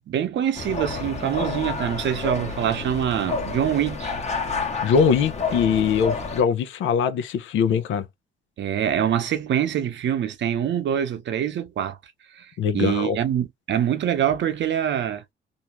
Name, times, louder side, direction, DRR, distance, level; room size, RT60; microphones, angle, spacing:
voice 1, 0.1-4.1 5.5-5.6 8.6-12.0 12.3-15.2, right 9 dB, 65° right, 0.8 m, -25 dB
sound 1, 0.5-6.4, left 4 dB, 35° left, 0.9 m, -30 dB
voice 2, 4.8-8.0 12.6-13.2, left 7 dB, 80° left, 0.6 m, -22 dB
2.7 x 2.3 x 3.0 m
cardioid pair, 90°, 20 cm